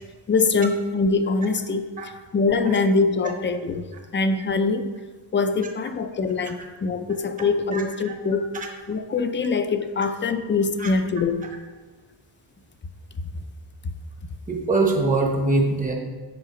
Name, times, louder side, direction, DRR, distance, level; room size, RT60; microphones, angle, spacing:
voice 1, 0.3-1.9 2.3-3.9 4.1-4.9 5.3-8.5 8.9-11.5, left 4 dB, 25° left, 9 dB, 0.4 m, -23 dB
voice 2, 7.7-8.1 8.5-8.7 10.8-10.9 14.5-15.9, right 3 dB, 15° right, 1 dB, 0.8 m, -23 dB
6.8 x 5.0 x 4.9 m, 1.3 s
wide cardioid pair, 145°, 47 cm